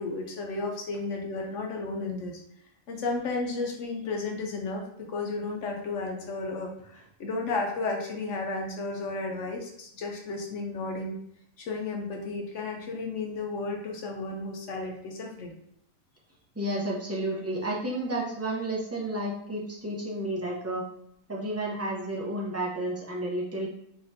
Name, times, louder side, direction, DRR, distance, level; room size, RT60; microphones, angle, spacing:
voice 1, 0.0-2.4 2.9-11.2 11.6-15.6, left 3 dB, 65° left, 1 dB, 0.9 m, -33 dB
voice 2, 16.6-20.8 21.3-23.7, right 1 dB, 15° right, -4 dB, 0.5 m, -31 dB
4.1 x 3.0 x 2.6 m, 0.72 s
omnidirectional pair, 1.4 m